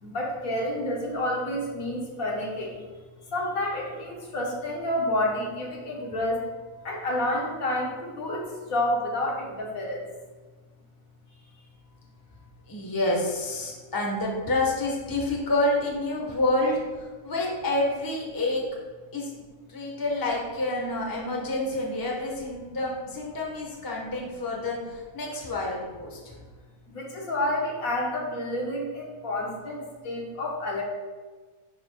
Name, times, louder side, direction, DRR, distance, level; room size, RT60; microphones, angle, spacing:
voice 1, 0.0-2.8 3.3-6.4 6.8-10.0 26.9-30.8, left 1 dB, 65° left, -2 dB, 1.5 m, -29 dB
voice 2, 12.7-18.6 19.1-19.3 19.7-26.4, left 2 dB, 15° left, -2 dB, 1.0 m, -28 dB
10.0 x 5.3 x 2.3 m, 1.4 s
omnidirectional pair, 1.6 m